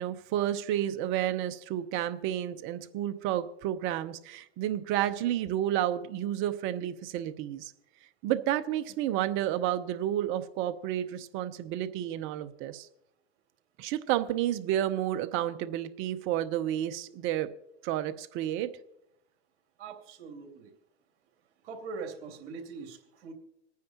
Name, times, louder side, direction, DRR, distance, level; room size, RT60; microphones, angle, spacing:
voice 1, 0.0-7.7 8.2-12.9 13.8-17.5 17.8-18.7, right 12 dB, 35° right, 11 dB, 0.8 m, -31 dB
voice 2, 19.8-20.7 21.6-23.3, right 4 dB, 60° right, 3 dB, 2.8 m, -42 dB
26.5 x 9.4 x 2.9 m, 0.84 s
hypercardioid pair, 125°, 33 cm